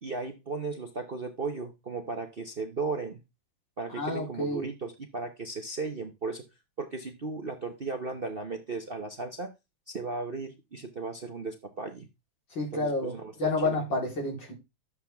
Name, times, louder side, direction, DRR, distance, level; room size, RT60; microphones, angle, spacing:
voice 1, 0.0-3.2 3.8-6.4 6.8-9.5 9.9-12.1 12.7-13.8, right 3 dB, 40° right, 5 dB, 0.9 m, -36 dB
voice 2, 3.9-4.7 12.6-14.5, left 2 dB, 70° left, -1 dB, 4.6 m, -30 dB
11.5 x 7.6 x 3.5 m, 0.24 s
omnidirectional pair, 2.2 m